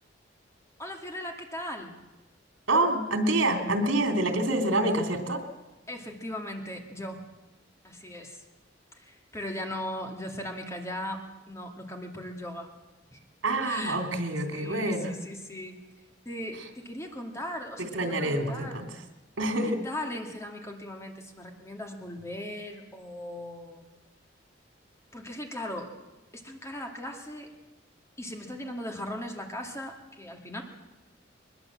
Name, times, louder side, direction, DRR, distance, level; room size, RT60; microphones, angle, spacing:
voice 1, 0.8-2.0 5.9-7.3 7.8-8.4 9.0-12.7 13.1-13.2 13.6-14.0 14.5-15.8 16.3-18.8 19.7-23.8 25.1-26.1 26.3-27.5 28.2-30.6, left 1 dB, 15° left, 2 dB, 2.4 m, -38 dB
voice 2, 2.7-5.4 13.4-15.2 17.8-18.9 19.4-19.8, right 1 dB, 85° right, 5 dB, 3.2 m, -27 dB
22.0 x 21.0 x 7.6 m, 1.1 s
head